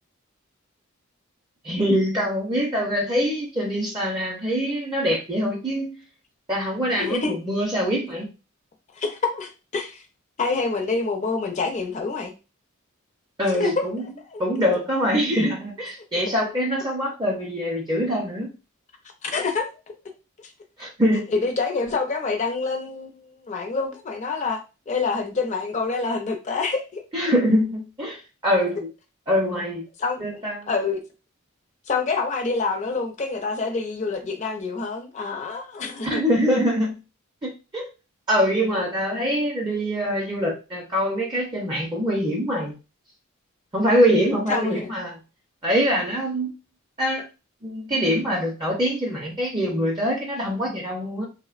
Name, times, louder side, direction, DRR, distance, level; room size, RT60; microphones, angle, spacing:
voice 1, 1.6-6.0 6.5-8.3 13.4-14.0 14.4-18.5 20.8-21.2 27.1-28.8 29.3-29.9 30.2-30.7 36.0-37.0 37.4-37.9 38.3-42.8 43.7-45.2 45.6-46.5 47.0-47.2 47.6-51.2, equal, 20° right, -2 dB, 0.5 m, -24 dB
voice 2, 7.0-7.3 8.9-10.0 10.4-12.3 13.5-13.8 14.3-14.4 19.2-19.9 20.4-20.5 21.3-27.0 30.0-30.4 30.7-31.0 31.9-36.2 44.5-44.9, left 4 dB, 35° left, 4 dB, 0.5 m, -27 dB
3.2 x 2.1 x 2.4 m, 0.29 s
head